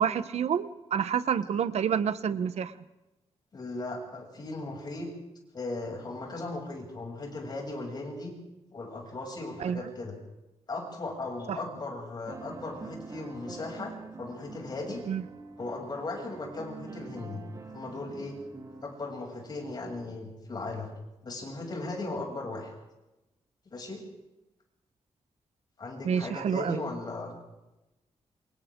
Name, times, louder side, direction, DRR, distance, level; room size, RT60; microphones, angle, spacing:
voice 1, 0.0-2.7 9.6-9.8 11.5-11.6 15.1-15.2 26.0-26.8, right 8 dB, 75° right, 13 dB, 1.0 m, -28 dB
voice 2, 3.5-5.1 5.5-8.4 8.7-10.1 10.7-15.0 15.6-17.4 17.7-18.4 18.8-20.9 21.2-22.7 23.7-24.0 25.8-27.3, left 2 dB, 40° left, 0 dB, 7.3 m, -37 dB
sound 1, 12.3-18.9, right 3 dB, 35° right, 3.7 m, -45 dB
28.0 x 26.5 x 3.8 m, 0.99 s
wide cardioid pair, 155°, 11 cm